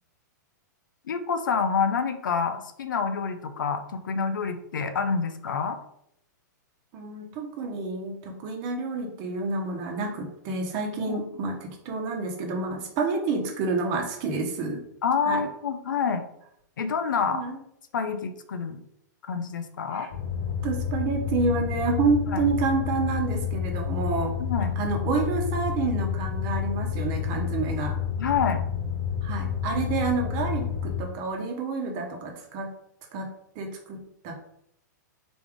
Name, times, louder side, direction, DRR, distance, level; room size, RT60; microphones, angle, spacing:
voice 1, 1.1-5.8 11.1-11.2 15.0-16.2 16.8-17.4 17.9-18.8 19.3-20.1 22.3-22.4 24.4-24.8 28.2-28.6, left 6 dB, 85° left, 8 dB, 0.7 m, -27 dB
voice 2, 6.9-14.8 15.2-15.4 17.3-17.6 19.9-20.1 20.6-24.3 24.8-28.0 29.2-32.7 33.1-34.0 34.2-34.3, right 4 dB, 40° right, 3 dB, 1.0 m, -29 dB
sound 1, 20.1-31.0, left 8 dB, 55° left, 1.3 m, -29 dB
4.1 x 3.4 x 3.6 m, 0.74 s
hypercardioid pair, 135°, 10 cm